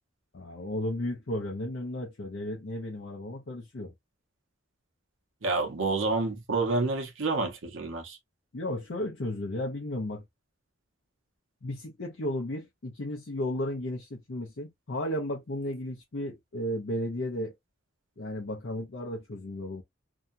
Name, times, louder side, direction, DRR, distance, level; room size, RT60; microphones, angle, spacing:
voice 1, 0.3-3.9 8.5-10.2 11.6-17.5 18.2-19.8, left 1 dB, 60° left, 0.6 m, -34 dB
voice 2, 5.4-8.2, right 3 dB, 70° right, 0.9 m, -28 dB
2.8 x 2.3 x 2.5 m
head